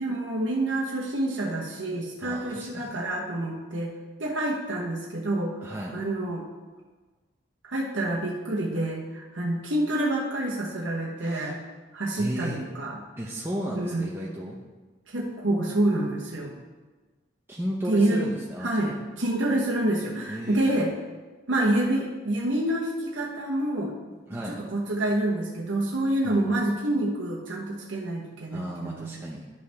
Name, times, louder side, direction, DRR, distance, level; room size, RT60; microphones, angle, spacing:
voice 1, 0.0-3.9 4.2-5.5 5.9-6.4 7.7-11.6 11.9-13.0 13.7-14.1 15.1-16.5 17.9-18.2 18.6-20.9 21.5-23.9 24.5-29.2, right 1 dB, 90° right, -3 dB, 1.1 m, -27 dB
voice 2, 2.2-2.9 5.6-6.0 11.2-11.5 12.2-12.6 13.2-14.6 17.5-18.9 20.3-20.7 24.3-24.6 26.2-26.7 28.5-29.4, equal, 10° right, -4 dB, 0.7 m, -34 dB
11.5 x 5.4 x 3.4 m, 1.3 s
head